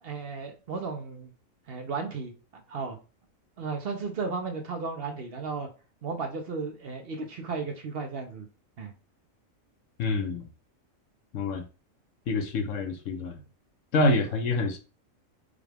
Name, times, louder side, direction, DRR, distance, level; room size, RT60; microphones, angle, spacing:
voice 1, 0.0-1.3 1.7-2.3 2.7-3.0 3.6-5.7 6.0-8.5 8.8-8.9, right 4 dB, 55° right, 0.8 m, -34 dB
voice 2, 10.0-10.5 11.3-11.6 12.3-13.4 13.9-14.8, left 2 dB, 70° left, 1.1 m, -26 dB
5.0 x 2.3 x 3.3 m
omnidirectional pair, 1.4 m